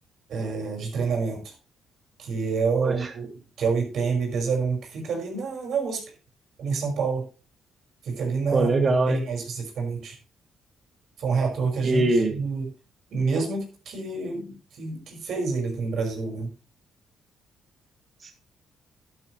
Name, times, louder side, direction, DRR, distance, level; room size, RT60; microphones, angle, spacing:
voice 1, 0.3-1.5 2.2-3.3 3.6-6.0 6.6-7.2 8.0-8.7 9.1-10.2 11.2-12.7 13.1-16.5, right 4 dB, 65° right, 1 dB, 5.5 m, -27 dB
voice 2, 2.8-3.1 8.5-9.2 11.8-12.4 18.2-18.3, right 2 dB, 40° right, 4 dB, 2.1 m, -22 dB
11.0 x 11.0 x 3.2 m, 0.34 s
cardioid pair, 90°, 0 cm